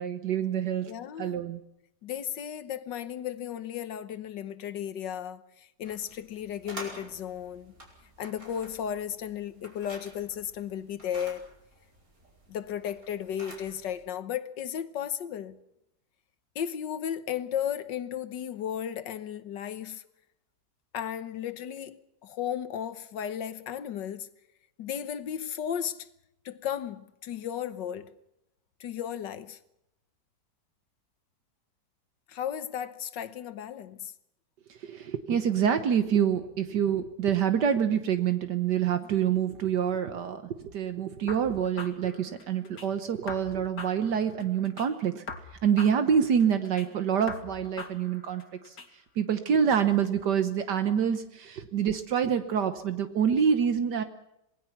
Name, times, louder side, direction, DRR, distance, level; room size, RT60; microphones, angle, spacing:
voice 1, 0.0-0.9 1.2-1.6 34.7-45.2 45.6-48.7 49.2-54.0, right 8 dB, 75° right, 1.7 m, -26 dB
voice 2, 0.9-1.4 2.0-7.7 8.2-11.5 12.5-15.6 16.6-20.0 20.9-22.0 22.2-24.3 24.8-26.1 26.5-28.1 28.8-29.6 32.3-34.1, left 9 dB, 90° left, 1.7 m, -35 dB
sound 1, 5.8-14.0, right 1 dB, 55° right, 5.6 m, -49 dB
sound 2, 41.3-42.9 43.3-44.9 45.3-46.9 47.3-48.9, left 4 dB, 70° left, 2.5 m, -42 dB
27.0 x 19.5 x 5.9 m
omnidirectional pair, 1.9 m